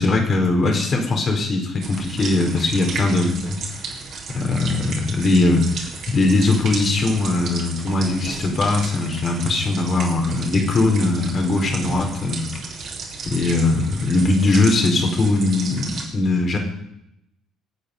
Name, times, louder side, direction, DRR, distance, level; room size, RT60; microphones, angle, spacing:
voice 1, 0.0-3.6 4.3-12.5 13.3-16.6, left 2 dB, 40° left, 3 dB, 4.3 m, -20 dB
sound 1, 1.8-16.1, right 4 dB, 50° right, 4.0 m, -34 dB
22.5 x 9.0 x 5.4 m, 0.79 s
figure-of-eight pair, 50°, 0 cm